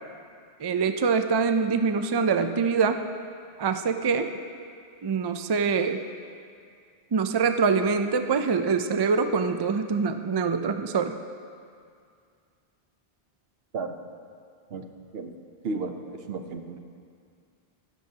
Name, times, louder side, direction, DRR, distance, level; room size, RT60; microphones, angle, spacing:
voice 1, 0.6-3.1 3.6-4.3 5.0-6.0 7.1-11.1, right 5 dB, 45° right, 8 dB, 0.3 m, -24 dB
voice 2, 15.6-16.8, right 3 dB, 70° right, 6 dB, 1.0 m, -33 dB
16.5 x 11.5 x 2.8 m, 2.3 s
omnidirectional pair, 1.1 m